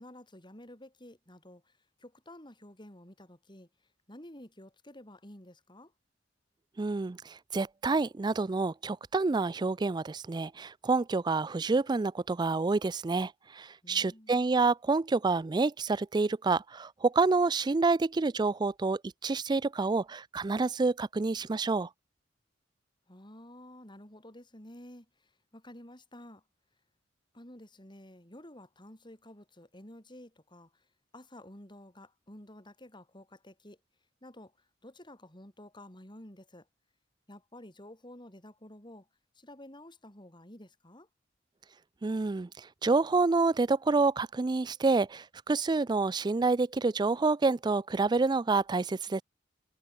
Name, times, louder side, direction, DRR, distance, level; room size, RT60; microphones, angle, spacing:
voice 1, 0.0-3.7 4.1-5.9 13.8-14.5 23.1-26.4 27.3-30.9 31.1-33.8 34.2-36.7 37.3-39.1 39.3-41.1, left 1 dB, 25° left, 6.0 m, -51 dB
voice 2, 6.8-21.9 42.0-49.2, right 3 dB, 25° right, 0.4 m, -28 dB
head